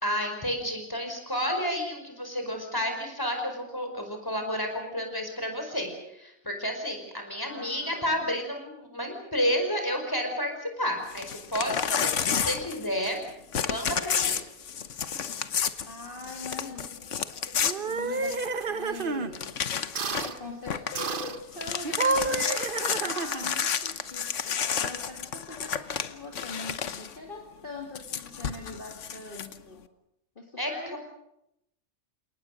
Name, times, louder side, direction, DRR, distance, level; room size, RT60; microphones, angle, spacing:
voice 1, 0.0-13.2 13.5-14.4 30.6-31.0, equal, 15° left, 4 dB, 5.1 m, -31 dB
voice 2, 7.4-8.3 15.9-19.5 20.2-29.8 30.4-31.0, left 2 dB, 45° left, 1 dB, 2.6 m, -42 dB
Crumpling crinkling / Tearing, 11.1-13.2 13.5-18.6 19.0-19.1 19.3-20.4 20.7-21.0 21.4-27.1 27.9-29.5, left 7 dB, 80° left, 1.4 m, -31 dB
sound 1, 17.6-19.3 20.0-20.4 21.0-21.4 21.8-23.6, right 4 dB, 50° right, 1.2 m, -30 dB
29.5 x 18.5 x 6.5 m, 0.81 s
omnidirectional pair, 1.2 m